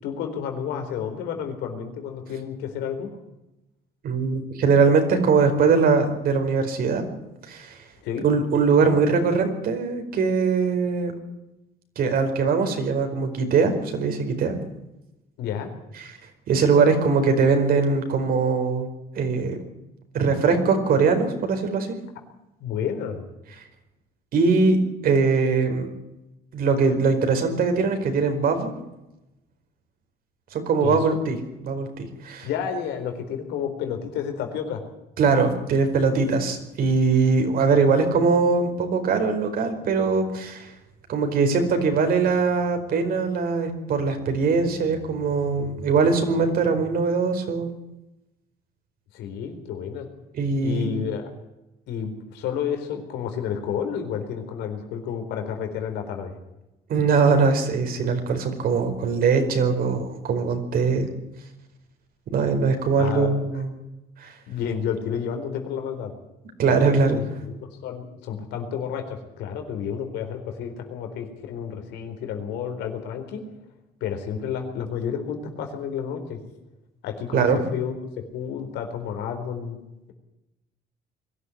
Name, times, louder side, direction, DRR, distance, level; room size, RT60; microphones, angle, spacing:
voice 1, 0.0-3.1 8.0-8.3 15.4-15.7 22.6-23.2 30.8-31.2 32.4-34.8 49.1-50.1 50.6-51.3 51.9-56.3 63.0-63.3 64.5-66.1 66.6-73.4 74.0-76.4 77.0-78.0 78.3-79.8, left 8 dB, 85° left, 6 dB, 4.2 m, -30 dB
voice 2, 4.0-7.0 7.5-7.8 8.2-11.2 12.0-14.6 16.0-16.1 16.5-18.9 19.1-19.6 20.1-22.0 24.3-24.8 25.0-25.9 26.5-28.7 30.5-31.4 31.6-32.5 35.2-40.7 41.1-47.7 50.3-51.1 56.9-61.1 62.3-63.7 64.2-64.3 66.6-67.2 77.3-77.6, right 4 dB, 60° right, 6 dB, 4.8 m, -21 dB
22.0 x 13.0 x 9.9 m, 0.94 s
cardioid pair, 110°, 17 cm